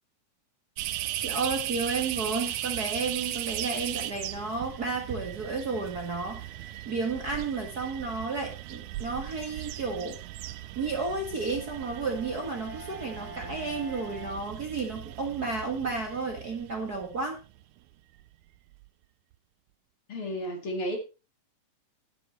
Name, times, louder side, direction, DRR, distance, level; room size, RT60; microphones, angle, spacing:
sound 1, 0.8-17.6 18.2-18.3 18.7-18.9, right 14 dB, 80° right, 2.1 m, -38 dB
voice 1, 1.2-10.2 10.8-17.4, right 4 dB, 35° right, 2 dB, 1.8 m, -32 dB
Bowed string instrument, 11.1-15.2, right 1 dB, 15° left, 1.3 m, -46 dB
voice 2, 20.1-21.0, equal, 45° left, 4 dB, 2.7 m, -32 dB
10.0 x 10.0 x 4.3 m, 0.31 s
omnidirectional pair, 3.5 m